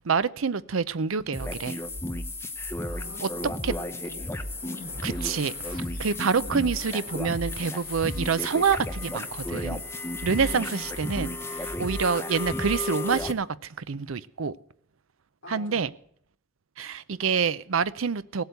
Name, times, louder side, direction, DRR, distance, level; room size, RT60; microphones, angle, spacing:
voice 1, 0.0-1.8 3.2-3.3 3.6-3.7 5.0-9.8 10.2-13.5 13.9-14.5 15.5-15.9 16.8-18.4, right 5 dB, 85° right, 17 dB, 0.6 m, -27 dB
sound 1, 1.3-13.3, left 2 dB, 10° left, 0.8 m, -33 dB
voice 2, 2.8-4.3 4.6-5.0 6.4-6.6 10.4-10.8 15.4-15.9, left 2 dB, 65° left, 0 dB, 3.0 m, -44 dB
sound 2, 4.2-9.2, left 4 dB, 45° left, 1.3 m, -51 dB
sound 3, 4.8-5.9 6.3-11.5, right 2 dB, 70° right, 2.6 m, -54 dB
17.0 x 8.1 x 8.1 m, 0.64 s
head